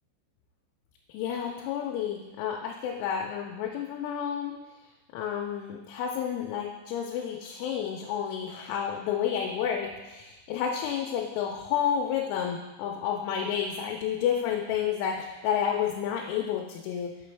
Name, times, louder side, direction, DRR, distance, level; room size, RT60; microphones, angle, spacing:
voice 1, 1.1-4.5 5.1-17.1, left 8 dB, 85° left, 0 dB, 3.0 m, -30 dB
6.2 x 6.0 x 3.3 m, 1.1 s
omnidirectional pair, 5.5 m